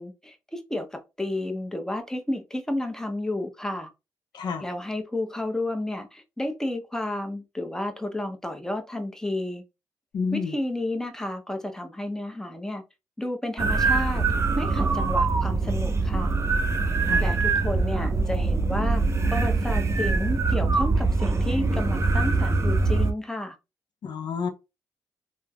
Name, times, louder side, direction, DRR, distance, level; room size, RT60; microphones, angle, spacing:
voice 1, 0.0-3.9 4.6-9.6 10.3-12.8 13.2-14.3 14.6-16.4 16.9-19.0 19.3-23.6, left 1 dB, 5° left, 0.7 m, -31 dB
voice 2, 4.3-4.7 10.1-10.5 17.1-17.2 24.0-24.5, left 5 dB, 65° left, 0.4 m, -29 dB
sound 1, 13.6-23.1, right 3 dB, 35° right, 0.5 m, -23 dB
3.2 x 2.0 x 2.3 m
supercardioid pair, 55°, 8 cm